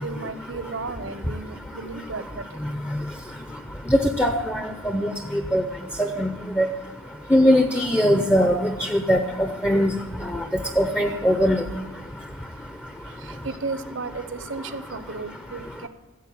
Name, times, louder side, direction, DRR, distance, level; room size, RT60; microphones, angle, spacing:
voice 1, 0.0-2.6 13.1-15.9, right 4 dB, 60° right, 12 dB, 0.8 m, -34 dB
voice 2, 3.9-5.1 5.5-5.6 6.0-6.3 6.6-6.7 7.3-9.9 10.8-11.6, equal, 10° left, 6 dB, 0.6 m, -20 dB
15.0 x 7.8 x 8.4 m, 1.2 s
head